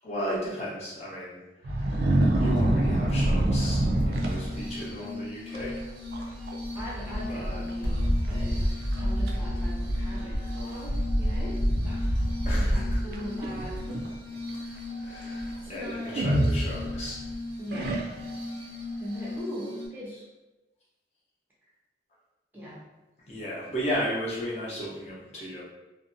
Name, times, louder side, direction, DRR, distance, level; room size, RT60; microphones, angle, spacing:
voice 1, 0.0-5.8 7.3-7.6 12.4-13.0 14.9-17.2 23.3-25.6, equal, 40° left, -7 dB, 0.7 m, -35 dB
sound 1, 1.6-4.9 5.5-5.8 6.1-6.5 6.8-6.9 7.7-7.8 8.3-8.4 8.9-9.4 10.2-10.3 13.1-14.1 16.1-17.2 17.7-18.4, right 1 dB, 60° right, 0.3 m, -26 dB
sound 2, 2.2-4.3 5.6-14.2 14.5-14.8 15.1-15.6 16.5-17.3 17.8-17.9 18.2-18.3, equal, 80° left, 0.6 m, -30 dB
Glass, 4.1-19.9, left 2 dB, 85° right, 0.7 m, -38 dB
voice 2, 6.7-8.6 9.0-11.6 11.8-12.0 12.5-13.9 15.7-16.5 17.6-18.0 19.0-20.3 22.5-22.8, equal, 10° right, -7 dB, 0.5 m, -40 dB
2.6 x 2.1 x 2.6 m, 1.1 s
head